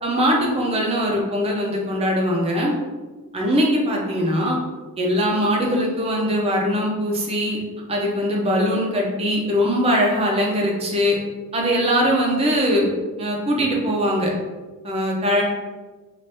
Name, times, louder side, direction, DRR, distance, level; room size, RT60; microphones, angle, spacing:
voice 1, 0.0-2.8 3.3-4.6 5.0-7.6 7.9-11.2 11.5-12.9 13.2-14.3 14.8-15.4, equal, 25° right, -1 dB, 0.6 m, -21 dB
3.3 x 2.5 x 2.6 m, 1.3 s
head